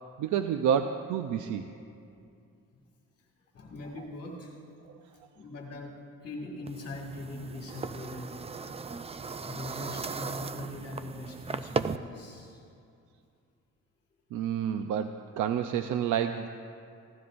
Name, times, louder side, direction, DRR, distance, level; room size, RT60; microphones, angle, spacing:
voice 1, 0.2-1.7 14.3-16.5, right 8 dB, 80° right, 8 dB, 0.6 m, -29 dB
voice 2, 3.5-4.6 5.4-8.4 9.4-12.6, left 2 dB, 55° left, -1 dB, 2.2 m, -41 dB
sound 1, 6.7-12.0, right 4 dB, 20° right, 0.5 m, -37 dB
23.0 x 16.5 x 2.6 m, 2.5 s
cardioid pair, 90°, 30 cm